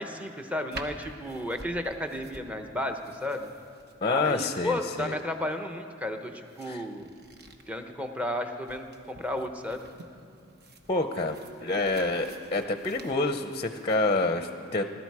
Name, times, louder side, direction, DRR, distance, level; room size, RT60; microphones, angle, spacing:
voice 1, 0.0-3.5 4.1-7.2 7.7-9.9, left 1 dB, 5° right, 5 dB, 0.9 m, -33 dB
sound 1, 0.7-14.0, right 2 dB, 55° right, 1.1 m, -49 dB
voice 2, 4.0-5.1 6.6-6.9 10.9-14.9, left 2 dB, 30° left, 8 dB, 0.6 m, -28 dB
20.5 x 12.5 x 4.8 m, 2.5 s
head